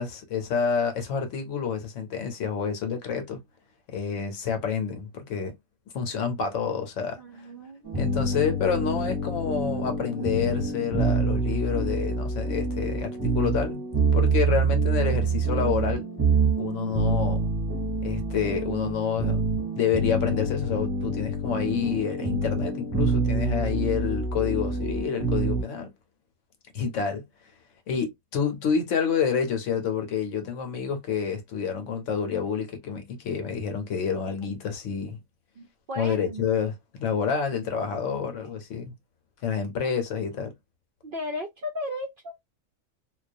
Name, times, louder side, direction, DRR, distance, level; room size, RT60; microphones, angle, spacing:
voice 1, 0.0-3.4 3.9-5.5 5.9-7.2 7.9-13.8 14.1-16.1 16.6-17.5 18.0-19.4 19.7-25.9 26.7-27.2 27.9-35.2 36.0-38.9 39.4-40.5, left 6 dB, 70° left, 1.0 m, -28 dB
voice 2, 7.2-8.0 35.6-36.5 41.0-42.4, left 1 dB, 65° right, 0.5 m, -35 dB
sound 1, 7.8-25.6, right 3 dB, 20° right, 0.7 m, -26 dB
2.3 x 2.2 x 2.5 m
omnidirectional pair, 1.4 m